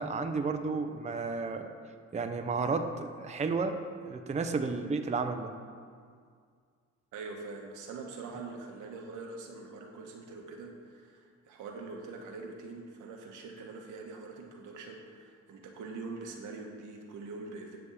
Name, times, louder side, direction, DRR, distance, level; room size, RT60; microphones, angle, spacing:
voice 1, 0.0-1.7 2.1-3.8 4.0-5.5, right 4 dB, 25° right, 6 dB, 0.6 m, -32 dB
voice 2, 7.1-17.8, right 3 dB, 90° right, 1 dB, 1.2 m, -44 dB
10.5 x 3.6 x 7.0 m, 2.1 s
cardioid pair, 90°, 30 cm